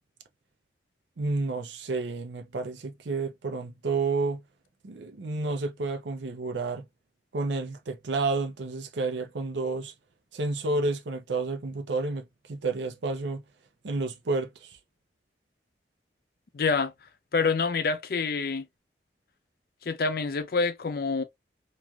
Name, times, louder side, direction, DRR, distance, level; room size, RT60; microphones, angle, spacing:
voice 1, 1.2-4.4 4.8-6.9 7.3-9.9 10.3-13.4 13.8-14.8, right 3 dB, 75° right, 0.5 m, -30 dB
voice 2, 16.5-16.9 17.3-18.7 19.8-21.2, left 4 dB, 55° left, 0.4 m, -27 dB
3.1 x 2.5 x 2.2 m
head